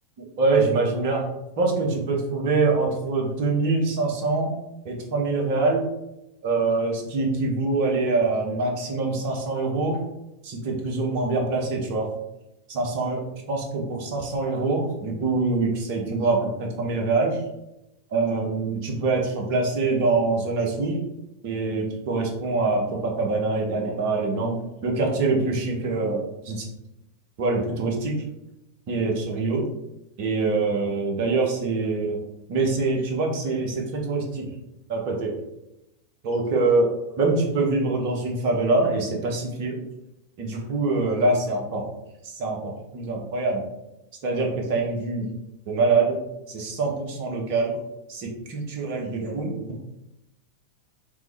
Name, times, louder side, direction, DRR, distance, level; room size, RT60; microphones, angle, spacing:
voice 1, 0.2-1.3 1.6-4.6 4.8-5.8 6.4-10.0 10.4-12.1 12.7-17.4 18.1-21.0 21.4-26.7 27.4-28.2 28.9-29.6 30.2-32.2 32.5-34.4 34.9-35.3 36.2-36.9 37.2-39.8 40.4-41.9 42.2-43.6 44.2-45.3 45.7-46.2 46.5-47.8 48.1-49.8, right 3 dB, 45° right, 0 dB, 0.9 m, -24 dB
3.6 x 3.0 x 3.3 m, 0.90 s
figure-of-eight pair, 90°, 0 cm